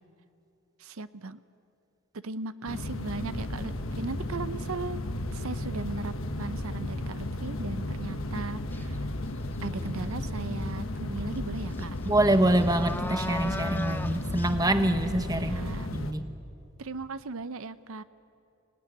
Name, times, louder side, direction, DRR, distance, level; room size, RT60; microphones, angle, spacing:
voice 1, 0.8-1.4 2.2-5.0 5.3-9.1 9.6-12.0 15.3-15.9 16.8-18.0, right 3 dB, 85° right, 13 dB, 0.7 m, -37 dB
sound 1, 2.7-16.1, left 1 dB, 70° left, 1.3 m, -34 dB
sound 2, 8.7-9.0 9.4-10.0 11.4-11.5 11.7-14.5, left 1 dB, 10° left, 0.6 m, -38 dB
voice 2, 12.1-16.3, right 1 dB, 15° right, 8 dB, 1.0 m, -25 dB
25.0 x 18.5 x 9.8 m, 2.6 s
head